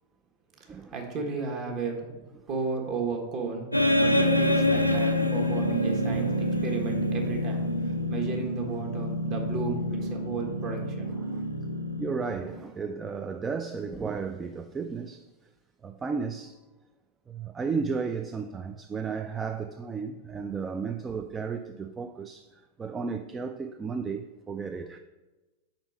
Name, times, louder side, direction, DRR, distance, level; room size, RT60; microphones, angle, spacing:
voice 1, 0.6-2.2 2.5-11.1, right 4 dB, 40° right, 1.2 m, -34 dB
sound 1, 3.7-12.6, left 1 dB, 90° left, 0.4 m, -27 dB
voice 2, 6.1-6.4 11.1-11.5 12.0-15.3 15.8-16.6 17.3-25.0, right 5 dB, 20° right, 0.3 m, -34 dB
5.2 x 4.3 x 5.4 m
figure-of-eight pair, 90°, 0 cm